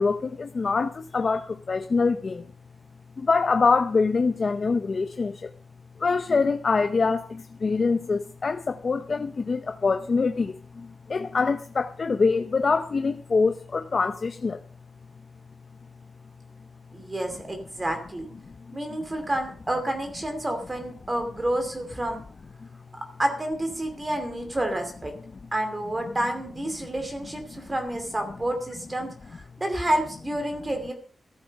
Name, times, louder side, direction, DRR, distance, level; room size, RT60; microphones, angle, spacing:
voice 1, 0.0-2.4 3.2-5.5 6.0-14.6, left 4 dB, 40° left, 0.7 m, -24 dB
voice 2, 16.9-18.3 18.7-22.2 23.2-25.1 25.5-30.9, right 1 dB, 20° right, 2.6 m, -29 dB
14.5 x 12.0 x 5.4 m
wide cardioid pair, 170°, 0 cm